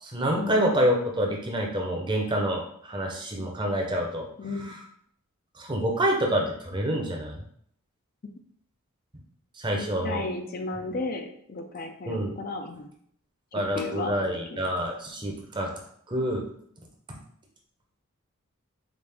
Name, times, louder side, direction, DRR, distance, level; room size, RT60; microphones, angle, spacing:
voice 1, 0.0-4.3 4.6-4.7 5.6-7.4 9.6-10.2 12.1-12.4 13.5-15.7 16.1-16.5 17.1-17.2, equal, 20° right, 1 dB, 0.6 m, -27 dB
voice 2, 4.4-4.7 9.8-12.9 13.7-14.1 14.5-14.7, left 3 dB, 40° left, 4 dB, 0.4 m, -34 dB
5.1 x 2.5 x 3.4 m, 0.66 s
head